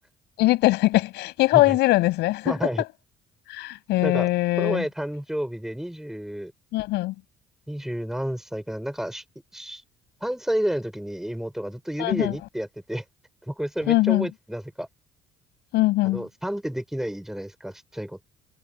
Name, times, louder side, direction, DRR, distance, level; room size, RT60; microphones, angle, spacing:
voice 1, 0.4-2.5 3.5-4.8 6.7-7.1 12.0-12.3 13.9-14.3 15.7-16.2, left 18 dB, 90° left, 6.9 m, -21 dB
voice 2, 2.4-2.8 4.0-4.3 4.6-6.5 7.7-9.2 9.5-9.8 10.2-13.0 13.5-14.9 16.0-18.3, equal, ahead, 5.0 m, -30 dB
cardioid pair, 110°, 17 cm